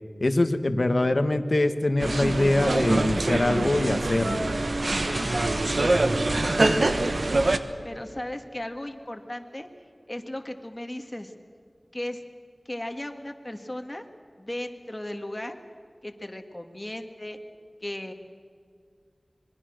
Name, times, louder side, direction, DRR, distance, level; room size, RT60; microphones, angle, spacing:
voice 1, 0.2-4.4, left 2 dB, 55° left, 9 dB, 1.4 m, -23 dB
sound 1, 2.0-7.6, right 2 dB, 70° right, 1.2 m, -24 dB
sound 2, 4.4-8.2, equal, 15° right, 1.6 m, -41 dB
voice 2, 7.8-9.7 10.1-11.3 11.9-12.2 12.7-14.0 14.4-15.6 16.0-17.4 17.8-18.1, left 1 dB, 25° left, 5 dB, 2.1 m, -36 dB
26.0 x 21.5 x 6.5 m, 2.2 s
wide cardioid pair, 55°, 0 cm